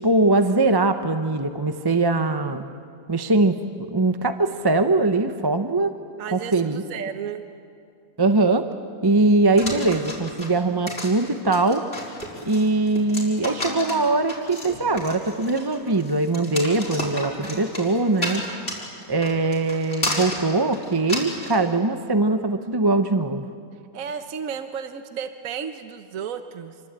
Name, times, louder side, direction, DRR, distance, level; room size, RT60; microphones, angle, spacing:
voice 1, 0.0-2.7 3.1-5.9 6.3-6.8 8.2-8.6 9.0-11.8 12.5-18.4 19.1-23.4, right 2 dB, 20° right, 8 dB, 0.7 m, -21 dB
voice 2, 6.2-7.4 23.7-26.8, right 7 dB, 65° right, 8 dB, 1.4 m, -33 dB
sound 1, 9.6-21.6, left 1 dB, 40° left, 5.2 m, -32 dB
27.5 x 24.0 x 8.9 m, 2.4 s
omnidirectional pair, 1.6 m